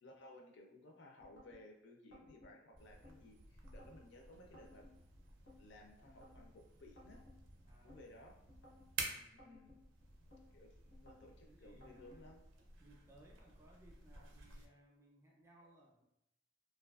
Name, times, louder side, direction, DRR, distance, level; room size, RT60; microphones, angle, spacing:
voice 1, 0.0-4.9 5.6-7.2 7.8-8.4 9.4-9.7 10.5-12.4, left 1 dB, 65° left, 2 dB, 0.4 m, -59 dB
sound 1, 1.2-1.6 2.1-3.2 3.6-4.0 4.5-5.6 6.0-6.5 7.0-8.0 8.5-8.9 9.4-10.4 10.9-11.3 11.8-12.2, left 1 dB, 90° left, 1.0 m, -61 dB
sound 2, 2.8-14.7, right 4 dB, 90° right, 0.4 m, -52 dB
voice 2, 7.6-8.1 9.0-9.5 10.8-11.0 11.4-12.3 12.8-16.0, right 1 dB, 15° right, -2 dB, 0.3 m, -65 dB
2.5 x 2.3 x 2.3 m, 0.80 s
head